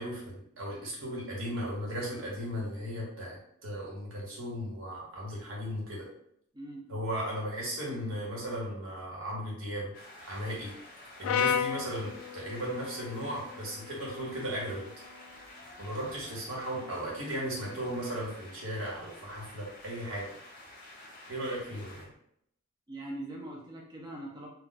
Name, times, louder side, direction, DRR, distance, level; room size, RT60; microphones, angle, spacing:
voice 1, 0.0-6.1 6.9-9.9 10.2-10.7 11.2-14.9 15.8-20.3 21.3-22.1, equal, 70° right, -3 dB, 1.1 m, -36 dB
voice 2, 6.5-6.9 21.3-21.5 22.9-24.5, right 1 dB, 20° right, -2 dB, 0.4 m, -42 dB
sound 1, 9.9-22.1, left 1 dB, 40° left, 0.8 m, -51 dB
Brass instrument, 11.2-15.5, left 8 dB, 80° left, 0.3 m, -35 dB
2.2 x 2.2 x 3.9 m, 0.72 s
head